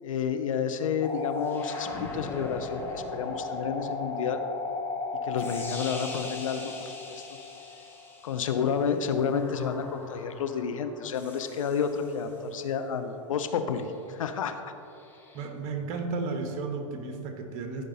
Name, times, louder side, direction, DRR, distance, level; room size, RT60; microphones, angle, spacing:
voice 1, 0.0-4.4 5.2-7.3 8.2-14.7, left 6 dB, 75° left, 8 dB, 0.8 m, -30 dB
sound 1, 1.0-8.6 9.3-12.3 15.0-15.4, left 3 dB, 15° left, 1.7 m, -37 dB
voice 2, 15.3-17.8, right 4 dB, 45° right, 4 dB, 1.4 m, -33 dB
14.0 x 5.4 x 4.0 m, 2.7 s
hypercardioid pair, 105°, 17 cm